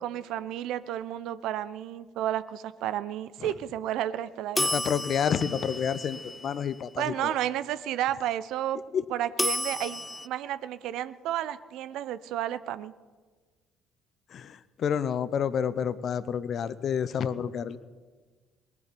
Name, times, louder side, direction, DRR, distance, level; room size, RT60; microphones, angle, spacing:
voice 1, 0.0-4.7 7.0-8.8 9.1-12.9, right 12 dB, 65° right, 15 dB, 0.6 m, -32 dB
voice 2, 4.6-7.3 8.9-9.0 14.3-17.8, left 8 dB, 55° left, 16 dB, 0.8 m, -29 dB
sound 1, 4.6-6.8 9.4-10.3, left 1 dB, 10° left, 0.4 m, -32 dB
19.0 x 7.1 x 10.0 m, 1.4 s
hypercardioid pair, 50°, 0 cm